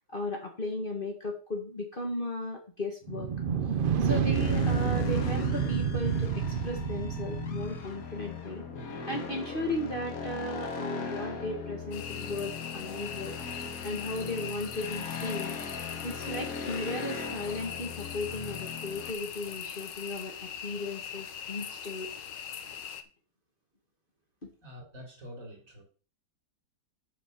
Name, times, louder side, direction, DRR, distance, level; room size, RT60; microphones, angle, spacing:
voice 1, 0.1-3.3 4.0-8.6 9.1-15.6 16.0-22.1 24.4-24.5, left 2 dB, 30° left, 1 dB, 1.7 m, -36 dB
sound 1, 3.1-7.9, right 7 dB, 65° right, 0.5 m, -29 dB
sound 2, 4.3-19.1, left 5 dB, 55° left, 1.7 m, -39 dB
sound 3, 11.9-23.0, left 8 dB, 85° left, 1.6 m, -41 dB
voice 2, 24.6-25.8, equal, 50° right, 1 dB, 4.1 m, -46 dB
7.1 x 6.5 x 6.7 m, 0.37 s
omnidirectional pair, 1.8 m